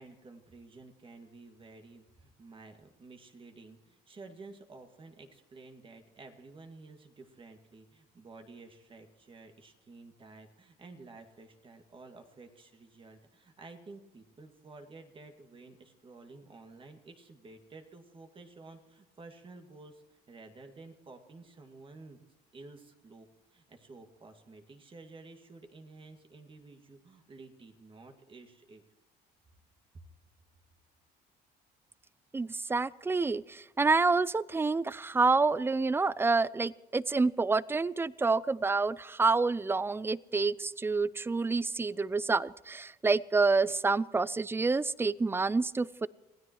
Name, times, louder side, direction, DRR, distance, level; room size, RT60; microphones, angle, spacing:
voice 1, 0.0-22.2 22.5-28.8 29.9-30.0, right 3 dB, 30° right, 5 dB, 2.1 m, -52 dB
voice 2, 32.3-46.1, right 3 dB, 15° right, 20 dB, 0.4 m, -28 dB
27.0 x 16.5 x 3.1 m, 1.1 s
cardioid pair, 110°, 17 cm